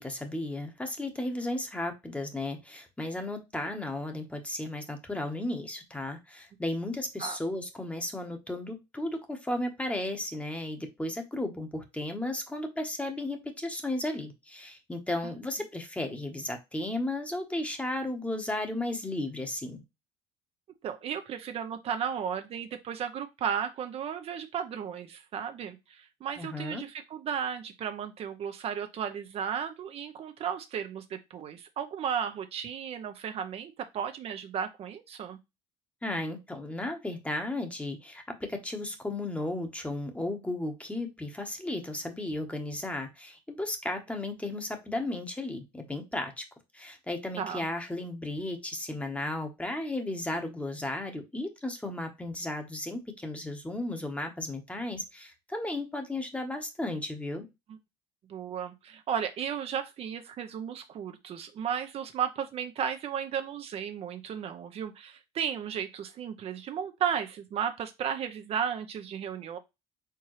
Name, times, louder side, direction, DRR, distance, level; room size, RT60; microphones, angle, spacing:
voice 1, 0.0-19.8 26.4-26.8 36.0-46.4 46.7-57.5, left 1 dB, 10° left, 5 dB, 1.1 m, -34 dB
voice 2, 20.8-35.4 47.4-47.7 58.3-69.6, right 8 dB, 50° right, 7 dB, 0.7 m, -34 dB
4.6 x 3.6 x 3.1 m, 0.22 s
supercardioid pair, 85°, 13 cm